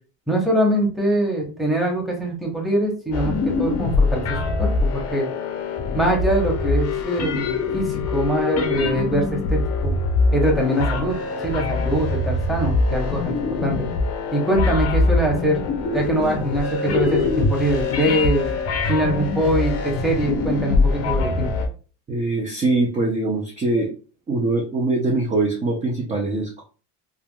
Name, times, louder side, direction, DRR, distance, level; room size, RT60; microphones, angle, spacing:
voice 1, 0.3-5.3 5.9-10.0 10.3-11.2 11.4-13.9 14.3-15.6 15.9-18.5 18.9-21.5, right 1 dB, ahead, -1 dB, 0.9 m, -23 dB
sound 1, 3.1-21.7, left 3 dB, 40° left, 0.6 m, -23 dB
voice 2, 22.1-23.9 24.3-26.6, right 2 dB, 20° right, -2 dB, 0.5 m, -22 dB
3.4 x 2.3 x 2.2 m, 0.37 s
cardioid pair, 125°, 37 cm